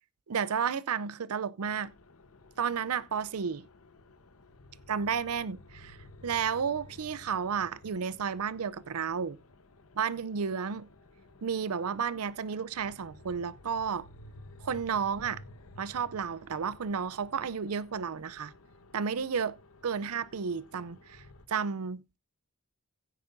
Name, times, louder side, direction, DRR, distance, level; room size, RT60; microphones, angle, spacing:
voice 1, 0.3-1.9 2.6-3.7 4.9-6.0 6.2-9.4 10.0-10.9 11.4-14.1 14.6-15.4 15.8-18.5 18.9-19.5 19.8-22.2, right 6 dB, 90° right, 0.6 m, -32 dB
sound 1, 1.6-21.5, left 1 dB, 80° left, 1.0 m, -54 dB
16.0 x 9.6 x 2.6 m
head